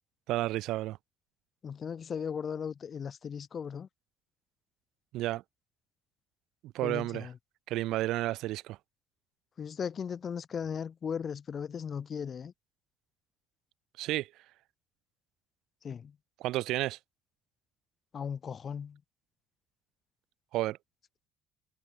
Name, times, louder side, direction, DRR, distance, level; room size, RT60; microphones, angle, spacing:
voice 1, 0.3-1.0 5.1-5.4 6.6-7.3 7.7-8.8 14.0-14.3 16.4-17.0 20.5-20.8, right 16 dB, 75° right, 0.4 m, -31 dB
voice 2, 1.6-3.9 6.8-7.3 9.6-12.5 15.8-16.1 18.1-19.0, left 7 dB, 35° left, 0.6 m, -37 dB
cardioid pair, 130°, 0 cm